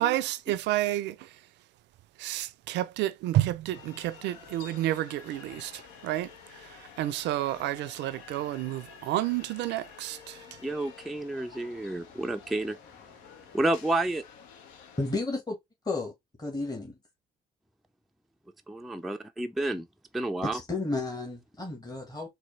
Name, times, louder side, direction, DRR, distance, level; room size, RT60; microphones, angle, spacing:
voice 1, 0.0-1.4 2.2-10.6, right 14 dB, 70° right, 0.4 m, -30 dB
sound 1, 3.7-15.2, left 7 dB, 80° left, 0.8 m, -50 dB
voice 2, 10.6-12.8 13.5-14.2 18.7-19.9 20.1-20.6, right 2 dB, ahead, 0.4 m, -30 dB
voice 3, 15.0-15.6 15.8-16.1 16.4-17.0 20.4-22.3, left 2 dB, 20° left, 1.4 m, -32 dB
4.2 x 2.6 x 3.2 m
hypercardioid pair, 55°, 19 cm